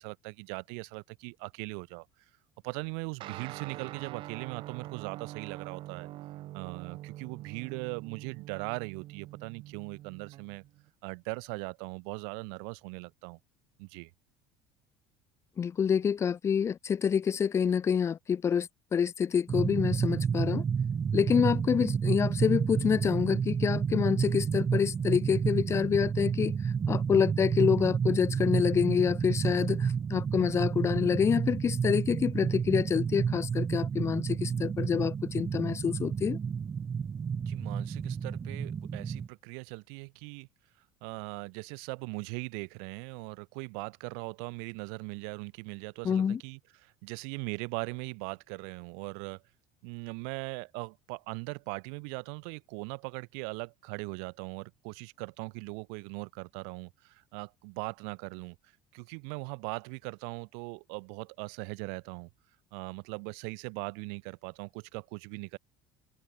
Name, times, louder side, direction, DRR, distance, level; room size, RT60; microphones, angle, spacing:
voice 1, 0.0-2.1 2.6-6.1 6.5-10.6 11.0-13.4 13.8-14.1 37.4-40.5 41.0-49.4 49.8-58.5 58.9-62.3 62.7-65.6, right 40 dB or more, 80° right, 5.1 m, -40 dB
Guitar, 3.2-10.9, right 15 dB, 45° right, 4.5 m, -44 dB
voice 2, 15.6-20.6 21.1-26.5 26.9-36.4 46.0-46.4, left 7 dB, 25° left, 2.4 m, -27 dB
sound 1, 19.5-39.3, right 6 dB, 20° right, 2.4 m, -30 dB
open air
cardioid pair, 170°, 12 cm